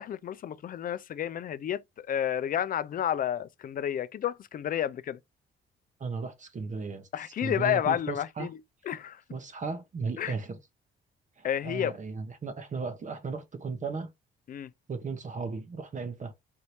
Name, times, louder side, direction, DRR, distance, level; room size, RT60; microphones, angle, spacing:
voice 1, 0.0-5.2 7.1-8.6 8.9-9.2 10.2-10.4 11.4-12.0 14.5-14.7, left 10 dB, 45° left, 0.4 m, -31 dB
voice 2, 6.0-7.1 7.4-8.5 9.3-10.6 11.4-14.1 14.9-16.3, right 4 dB, 40° right, 0.9 m, -35 dB
4.5 x 2.7 x 3.1 m
cardioid pair, 90°, 20 cm